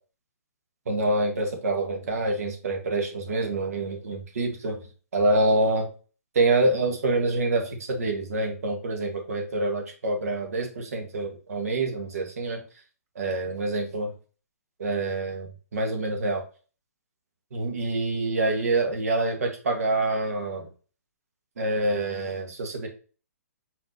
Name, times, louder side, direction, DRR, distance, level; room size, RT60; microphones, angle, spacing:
voice 1, 0.9-4.8 5.1-5.9 6.3-12.6 13.1-14.1 14.8-16.4 17.5-20.7 21.6-22.9, right 2 dB, 70° right, 4 dB, 1.4 m, -26 dB
4.5 x 3.9 x 2.7 m, 0.38 s
hypercardioid pair, 135°, 9 cm